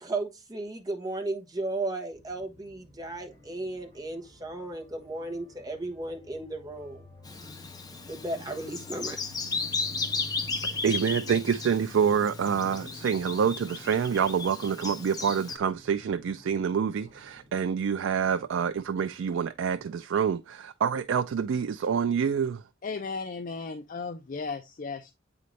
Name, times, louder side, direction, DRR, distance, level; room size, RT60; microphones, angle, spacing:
voice 1, 0.0-7.1 8.1-9.2, right 2 dB, 20° right, 1.1 m, -35 dB
sound 1, 2.1-19.9, left 1 dB, 35° right, 3.9 m, -51 dB
Bird vocalization bird call bird song, 7.3-15.6, left 4 dB, 20° left, 0.8 m, -35 dB
voice 2, 10.6-22.6, right 7 dB, 75° right, 0.3 m, -27 dB
voice 3, 22.8-25.1, left 4 dB, 45° left, 0.5 m, -35 dB
8.5 x 4.0 x 3.2 m
head